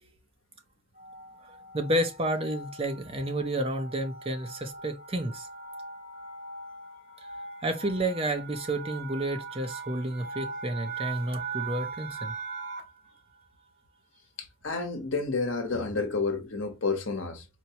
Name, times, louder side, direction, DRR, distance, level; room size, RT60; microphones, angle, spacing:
sound 1, 1.0-13.1, right 4 dB, 60° right, 2.0 m, -40 dB
voice 1, 1.7-5.5 7.6-12.3, right 1 dB, 30° right, 0.7 m, -30 dB
voice 2, 14.4-17.4, left 4 dB, 70° left, 1.0 m, -30 dB
4.5 x 2.2 x 2.8 m
head